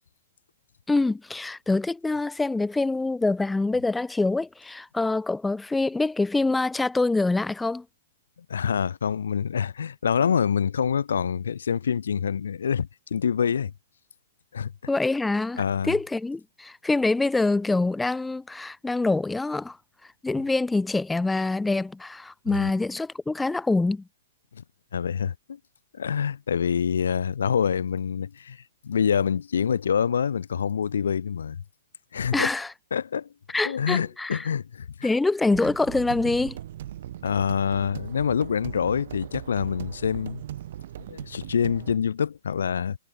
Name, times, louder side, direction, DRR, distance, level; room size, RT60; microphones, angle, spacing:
voice 1, 0.9-7.8 14.9-19.8 20.2-24.0 32.3-32.7 33.5-34.5 35.0-36.6, left 3 dB, 5° left, 2.0 m, -25 dB
voice 2, 8.5-13.7 14.5-14.7 15.6-16.0 22.5-22.7 24.5-24.6 24.9-25.6 25.9-31.6 32.1-32.5 32.9-33.3 33.7-35.1 37.2-40.4 41.0-43.0, left 7 dB, 90° left, 2.0 m, -26 dB
sound 1, 35.5-41.9, right 12 dB, 50° right, 4.4 m, -38 dB
hypercardioid pair, 170°, 0 cm